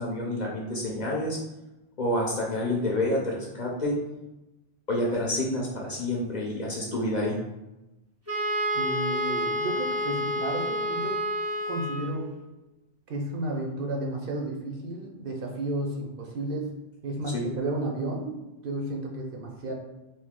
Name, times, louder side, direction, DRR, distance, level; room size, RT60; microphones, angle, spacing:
voice 1, 0.0-1.4 2.0-3.9 4.9-7.4 17.3-17.4, left 1 dB, 50° left, -2 dB, 0.6 m, -28 dB
Wind instrument woodwind instrument, 8.3-12.3, equal, 20° right, 0.5 m, -29 dB
voice 2, 8.7-11.2 11.7-12.3 13.1-16.7 17.0-18.4 18.6-19.7, right 2 dB, 60° right, 1 dB, 0.7 m, -32 dB
2.9 x 2.6 x 3.6 m, 0.99 s
omnidirectional pair, 1.1 m